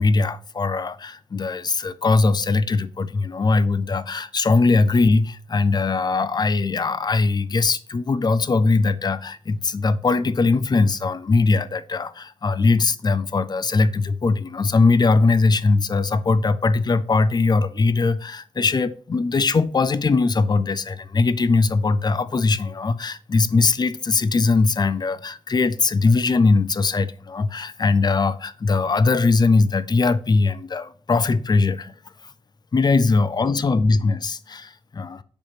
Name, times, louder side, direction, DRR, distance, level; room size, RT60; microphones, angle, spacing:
voice 1, 0.0-31.9 32.7-35.2, left 3 dB, 45° left, 0.6 m, -20 dB
6.7 x 3.1 x 5.9 m
cardioid pair, 55°, 10 cm